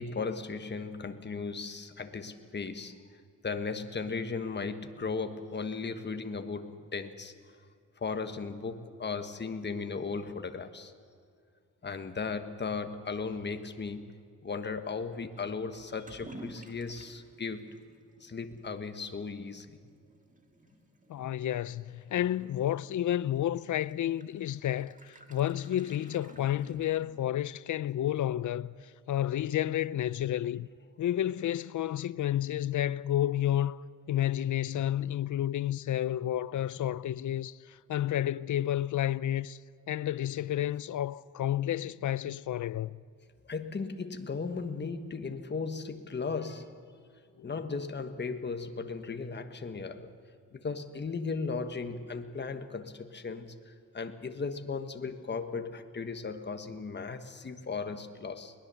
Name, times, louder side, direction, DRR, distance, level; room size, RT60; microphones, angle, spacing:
voice 1, 0.0-3.0 3.4-7.3 8.0-10.9 11.8-14.2 14.4-17.7 18.2-19.8 43.5-46.8 47.4-50.1 50.5-58.5, left 4 dB, 35° left, 1.3 m, -36 dB
Toilet flush / Liquid, 15.7-27.4, right 2 dB, 25° right, 1.8 m, -54 dB
voice 2, 21.1-28.8 29.1-30.7 31.0-33.8 34.1-39.6 39.9-43.0 47.4-47.5, left 12 dB, 70° left, 0.5 m, -31 dB
22.0 x 19.5 x 6.9 m
wide cardioid pair, 115°, 31 cm